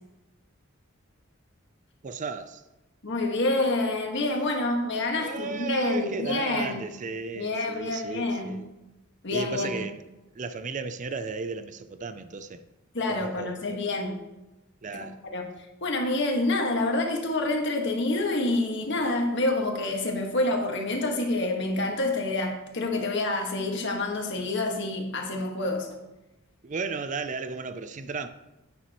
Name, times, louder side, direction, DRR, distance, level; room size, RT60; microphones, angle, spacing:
voice 1, 2.0-2.6 5.2-8.7 9.3-10.0 10.3-12.6 13.1-13.8 14.8-15.2 26.6-28.3, right 4 dB, 35° right, 0.4 m, -35 dB
voice 2, 3.0-6.8 7.3-8.6 9.2-9.8 12.9-14.1 14.9-15.4 15.8-25.9, left 2 dB, 60° left, 1.6 m, -27 dB
11.0 x 8.6 x 3.0 m
head